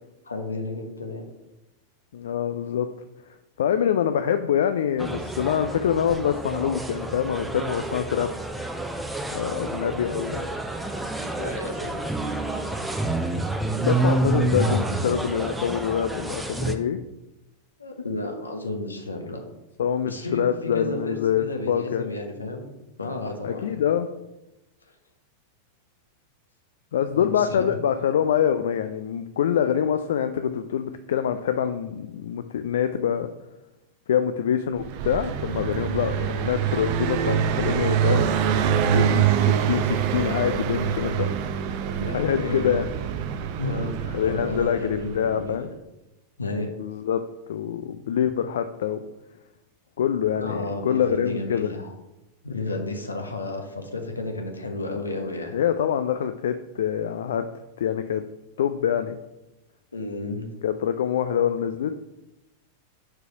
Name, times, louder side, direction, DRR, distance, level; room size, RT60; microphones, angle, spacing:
voice 1, 0.2-1.2 11.4-12.0 17.8-19.4 20.1-20.5 20.7-22.7 23.0-23.6 27.1-27.7 42.0-42.8 43.6-45.7 46.4-46.7 50.4-51.9 52.4-55.6 59.9-60.5, left 2 dB, 80° left, 4 dB, 1.0 m, -32 dB
voice 2, 2.1-2.9 3.6-8.3 9.3-10.5 13.8-17.0 19.8-22.1 23.4-24.1 26.9-33.3 34.1-38.3 38.8-41.3 42.1-42.8 44.1-45.7 46.8-47.2 47.5-49.0 50.0-51.7 55.5-57.4 57.8-58.2 58.6-59.2 60.6-62.1, left 9 dB, 60° left, 9 dB, 0.3 m, -25 dB
sound 1, 5.0-16.8, right 2 dB, 5° right, 0.6 m, -28 dB
Car passing by, 34.8-45.4, right 9 dB, 45° right, 0.6 m, -25 dB
4.7 x 4.7 x 5.9 m, 0.96 s
figure-of-eight pair, 90°, 0 cm